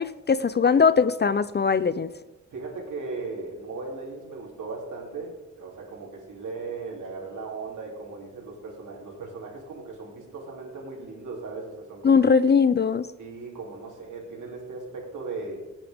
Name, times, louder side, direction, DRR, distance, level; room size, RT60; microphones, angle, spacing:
voice 1, 0.0-2.1 12.0-13.1, left 5 dB, 35° left, 15 dB, 0.4 m, -20 dB
voice 2, 2.5-12.2 13.2-15.6, right 3 dB, 80° right, -3 dB, 3.1 m, -37 dB
17.0 x 8.9 x 3.5 m, 1.1 s
wide cardioid pair, 95°, 30 cm